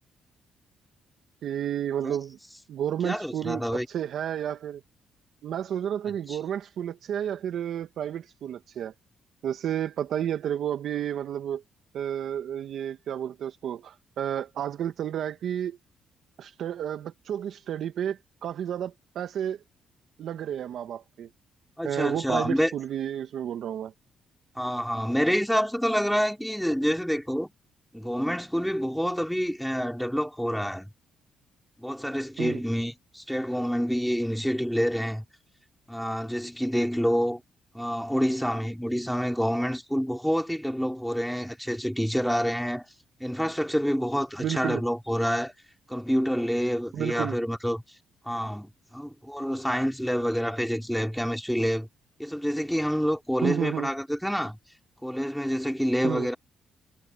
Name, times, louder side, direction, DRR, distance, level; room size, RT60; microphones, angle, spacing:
voice 1, 1.4-2.4 2.7-4.8 5.4-8.9 9.4-11.6 11.9-15.8 16.4-19.6 20.2-21.3 21.8-23.9 32.4-32.6 44.4-44.8 46.9-47.4 53.4-53.9 56.0-56.3, right 10 dB, 70° right, 1.3 m, -31 dB
voice 2, 3.0-3.9 6.3-6.4 21.8-22.7 24.6-27.5 27.9-30.9 31.8-35.2 35.9-37.4 37.7-42.9 43.2-45.5 45.9-47.8 48.3-51.9 52.2-54.6 55.0-56.4, equal, ahead, 4.1 m, -27 dB
cardioid pair, 90°, 0 cm